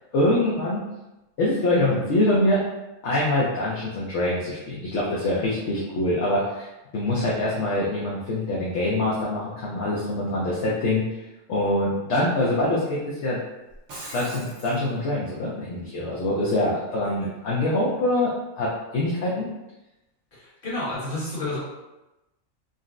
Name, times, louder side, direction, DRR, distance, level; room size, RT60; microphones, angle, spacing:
voice 1, 0.1-0.8 1.4-2.6 3.0-6.7 6.9-11.0 11.5-13.4 14.1-19.5, left 1 dB, 65° left, -6 dB, 0.9 m, -24 dB
Shatter, 13.7-14.8, right 1 dB, 70° right, 1.4 m, -40 dB
voice 2, 20.3-21.6, left 2 dB, 40° left, -8 dB, 1.3 m, -31 dB
3.9 x 2.1 x 2.4 m, 0.98 s
omnidirectional pair, 1.4 m